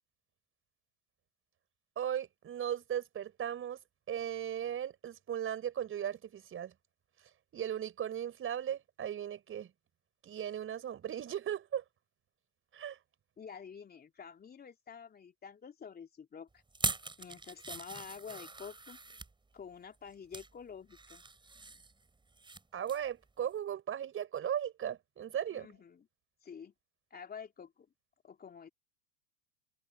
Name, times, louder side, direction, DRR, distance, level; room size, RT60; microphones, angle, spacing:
voice 1, 2.0-3.8 4.1-6.7 7.5-9.7 10.2-11.8 12.7-13.0 22.7-25.7, right 9 dB, 25° right, 4.8 m, -37 dB
voice 2, 13.4-16.6 17.2-19.0 19.5-21.2 25.5-26.1 26.4-26.7 27.1-27.9 28.2-28.7, left 6 dB, 20° left, 3.3 m, -49 dB
sound 1, 16.7-19.3 19.9-20.5 20.9-22.6 22.9-23.1 23.5-23.6, right 3 dB, 10° right, 6.2 m, -41 dB
hypercardioid pair, 100°, 45 cm